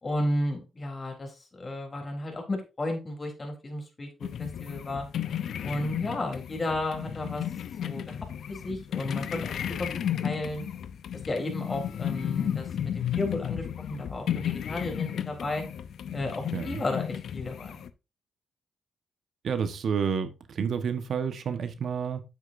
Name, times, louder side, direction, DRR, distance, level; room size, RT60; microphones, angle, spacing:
voice 1, 0.0-5.1 5.6-7.4 7.8-8.2 8.5-9.9 10.2-10.6 11.3-15.6 16.1-17.8, left 1 dB, 35° left, 2 dB, 3.6 m, -33 dB
sound 1, 4.2-17.9, left 9 dB, 70° left, 0.6 m, -33 dB
voice 2, 16.5-16.8 19.4-22.2, right 6 dB, 65° right, 9 dB, 1.3 m, -30 dB
9.2 x 8.0 x 2.7 m, 0.28 s
supercardioid pair, 60°, 0 cm